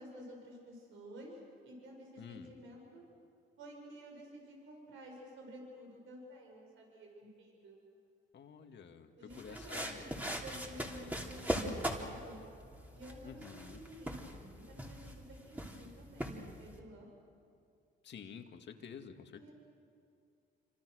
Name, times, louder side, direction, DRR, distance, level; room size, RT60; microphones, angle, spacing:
voice 1, 0.0-1.4 1.6-3.0 3.6-7.8 9.2-10.1 10.4-12.4 12.9-17.1 19.3-19.5, equal, 80° right, 0 dB, 6.8 m, -52 dB
voice 2, 2.2-2.5 8.3-10.4 13.2-13.8 18.0-19.5, left 7 dB, 60° left, 5 dB, 2.2 m, -50 dB
sound 1, 9.3-16.8, equal, 10° right, 3.4 m, -41 dB
28.5 x 26.0 x 6.5 m, 2.5 s
cardioid pair, 90°, 20 cm